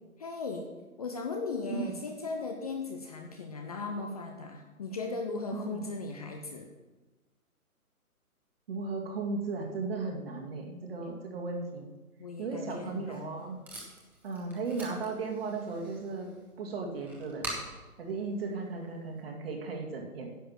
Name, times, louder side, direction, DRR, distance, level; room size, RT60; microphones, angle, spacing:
voice 1, 0.2-0.7 1.0-6.7 11.0-11.2 12.2-13.4, left 3 dB, 25° left, 3 dB, 0.7 m, -37 dB
voice 2, 5.5-5.9 8.7-11.9 12.4-13.6 14.2-16.3 16.6-17.5 18.0-20.4, right 4 dB, 40° right, 1 dB, 2.3 m, -36 dB
Packing tape duct tape, 12.7-19.2, right 1 dB, 5° right, 1.5 m, -46 dB
10.0 x 7.8 x 6.2 m, 1.2 s
figure-of-eight pair, 140°, 44 cm